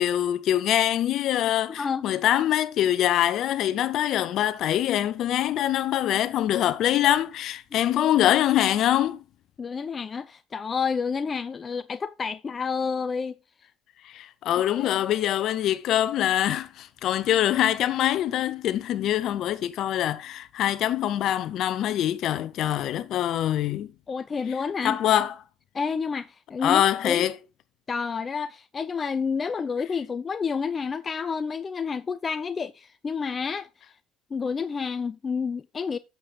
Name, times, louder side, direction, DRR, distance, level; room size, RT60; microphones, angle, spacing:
voice 1, 0.0-9.2 14.0-23.9 24.8-25.3 26.6-27.3, left 12 dB, 60° left, 0.8 m, -24 dB
voice 2, 9.6-13.4 14.8-14.9 24.1-25.0 25.7-27.3 27.9-33.7 34.3-36.0, left 5 dB, 30° left, 0.5 m, -29 dB
8.4 x 7.0 x 3.8 m
hypercardioid pair, 75°, 0 cm